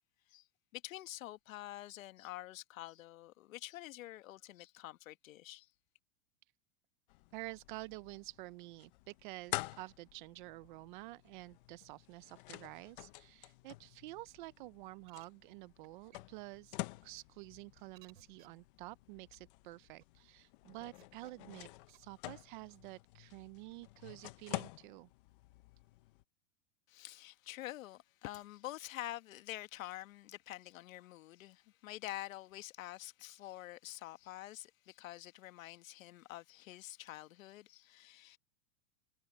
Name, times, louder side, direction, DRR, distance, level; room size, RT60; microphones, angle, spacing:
voice 1, 0.7-5.7 26.9-38.4, left 15 dB, 85° left, 1.5 m, -47 dB
sound 1, 7.1-26.2, left 21 dB, 45° left, 0.7 m, -49 dB
voice 2, 7.3-16.8 17.0-25.1, right 21 dB, 40° right, 0.5 m, -50 dB
sound 2, 15.1-15.2 15.8-15.9 16.1-16.2 17.0-17.1 17.9-18.5 19.3-19.4 19.8-20.0 20.9-21.3 21.9-22.0, right 15 dB, 85° right, 5.2 m, -61 dB
supercardioid pair, 170°, 39 cm